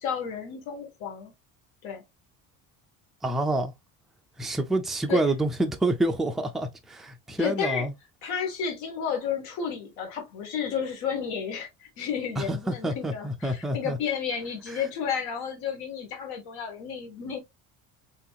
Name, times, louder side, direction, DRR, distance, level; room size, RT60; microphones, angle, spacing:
voice 1, 0.0-1.3 1.8-2.0 5.1-5.2 7.4-7.9 8.2-17.4, left 7 dB, 75° left, 1.5 m, -32 dB
voice 2, 3.2-3.7 4.4-7.9 12.4-14.0 14.7-14.8, right 2 dB, ahead, 0.4 m, -27 dB
3.4 x 2.9 x 2.3 m
cardioid pair, 115°, 38 cm